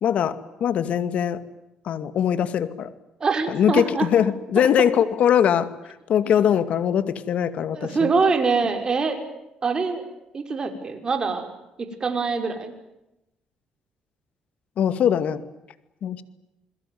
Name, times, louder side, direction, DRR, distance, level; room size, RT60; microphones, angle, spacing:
voice 1, 0.0-1.4 1.9-2.9 3.5-5.7 6.1-8.1 14.8-15.4 16.0-16.2, left 9 dB, 65° left, 13 dB, 2.2 m, -21 dB
voice 2, 3.2-4.1 4.6-4.7 7.7-9.2 9.6-10.0 10.3-11.4 11.8-12.7, right 4 dB, 35° right, 6 dB, 5.7 m, -24 dB
28.5 x 21.5 x 9.5 m, 0.91 s
cardioid pair, 90°, 2 cm